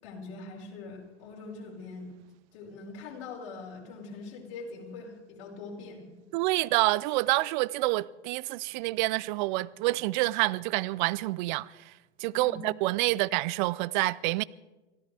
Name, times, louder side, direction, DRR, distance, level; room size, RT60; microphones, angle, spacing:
voice 1, 0.0-2.1 2.5-6.1 12.3-12.7, left 3 dB, 55° left, 5.4 m, -43 dB
voice 2, 6.3-11.9 12.2-14.4, right 20 dB, 45° right, 0.5 m, -28 dB
25.0 x 16.0 x 3.5 m
hypercardioid pair, 110°, 34 cm